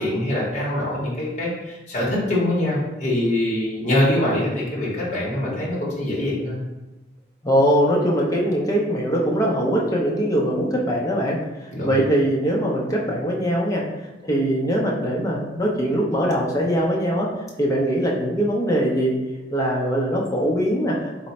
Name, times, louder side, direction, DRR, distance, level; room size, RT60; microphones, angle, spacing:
voice 1, 0.0-6.6 11.7-11.9, left 1 dB, 40° left, -5 dB, 0.9 m, -24 dB
voice 2, 7.4-13.9 14.2-17.3 17.6-19.2 19.5-21.0, equal, 20° left, -2 dB, 0.5 m, -22 dB
3.3 x 2.1 x 4.0 m, 1.1 s
head